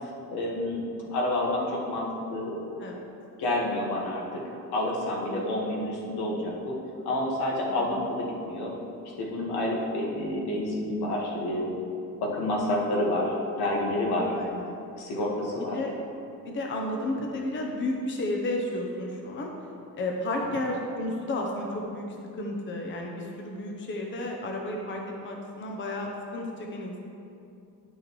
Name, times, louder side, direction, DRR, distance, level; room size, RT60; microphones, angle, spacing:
voice 1, 0.0-0.8 1.1-2.6 3.4-4.4 4.7-6.8 7.0-8.7 9.2-11.8 12.2-14.3 15.0-15.7 17.1-17.2 20.5-20.6, left 1 dB, 85° left, -3 dB, 1.6 m, -29 dB
voice 2, 14.3-14.8 15.7-15.9 16.4-19.5 20.0-22.1 22.4-27.0, left 1 dB, 30° left, 1 dB, 0.7 m, -32 dB
10.0 x 6.3 x 3.1 m, 2.7 s
cardioid pair, 160°, 38 cm